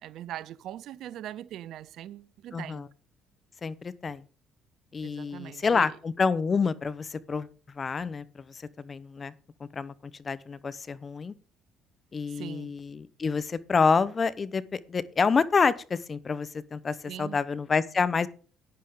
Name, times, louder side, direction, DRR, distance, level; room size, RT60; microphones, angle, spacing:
voice 1, 0.0-2.9 5.0-6.0 12.3-12.8 17.1-17.4, right 12 dB, 65° right, 0.5 m, -41 dB
voice 2, 2.5-2.9 3.6-4.2 4.9-7.5 7.7-9.3 9.6-9.9 10.2-11.3 12.1-18.3, left 5 dB, 35° left, 0.9 m, -28 dB
11.5 x 9.9 x 3.7 m
supercardioid pair, 65°, 0 cm